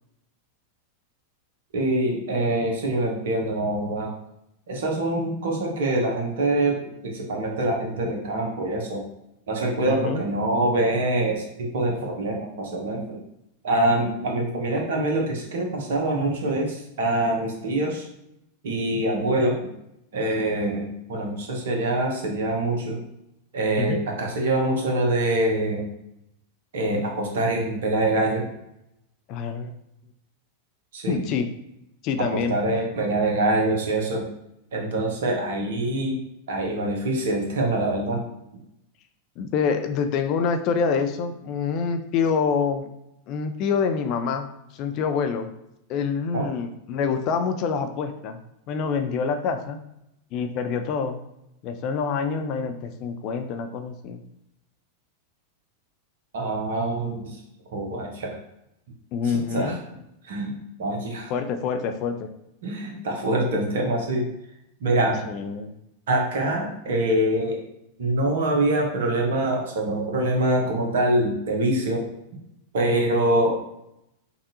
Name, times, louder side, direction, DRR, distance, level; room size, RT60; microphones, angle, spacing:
voice 1, 1.7-4.1 4.7-9.0 9.5-13.2 13.6-18.0 18.6-19.6 20.1-23.0 23.5-25.9 26.7-28.4 30.9-31.2 32.3-34.2 34.7-36.2 36.5-38.2 46.3-46.5 56.3-57.4 57.7-58.3 59.2-60.0 60.2-61.3 62.6-64.2 64.8-65.2 66.1-67.6 68.0-72.1 72.7-73.5, right 1 dB, 60° right, 0 dB, 1.1 m, -24 dB
voice 2, 9.9-10.2 23.8-24.0 29.3-29.7 31.1-31.5 32.0-32.6 39.4-42.9 43.3-44.5 44.7-45.5 45.9-48.4 48.7-49.8 50.3-51.2 51.6-54.2 59.1-59.8 61.3-62.3 65.2-65.7, left 5 dB, 40° left, 7 dB, 0.4 m, -26 dB
5.4 x 2.5 x 2.7 m, 0.83 s
figure-of-eight pair, 90°, 0 cm